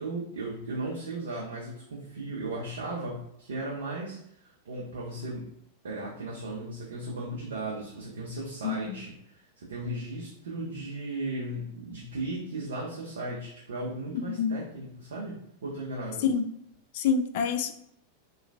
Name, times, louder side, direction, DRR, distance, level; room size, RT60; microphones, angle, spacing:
voice 1, 0.0-5.5 5.8-16.2, right 2 dB, 65° right, -4 dB, 0.6 m, -36 dB
voice 2, 8.6-9.0 14.1-14.6 16.2-16.4 16.9-17.7, left 6 dB, 50° left, 7 dB, 0.3 m, -27 dB
3.1 x 2.3 x 2.3 m, 0.73 s
figure-of-eight pair, 90°, 0 cm